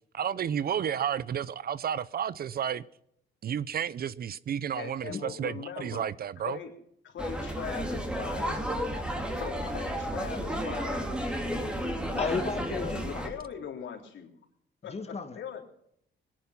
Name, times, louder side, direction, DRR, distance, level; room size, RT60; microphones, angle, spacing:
voice 1, 0.1-2.8 3.4-6.6, right 9 dB, 50° right, 0.6 m, -32 dB
voice 2, 4.7-6.1 6.4-6.7 7.0-8.9 9.4-12.2 12.7-14.3 14.8-14.9 15.3-15.6, left 8 dB, 70° left, 3.6 m, -40 dB
sound 1, 7.2-13.3, equal, 5° right, 3.1 m, -32 dB
voice 3, 12.2-13.3 14.9-15.4, left 4 dB, 30° left, 2.1 m, -33 dB
20.0 x 10.5 x 5.8 m
cardioid pair, 90°, 20 cm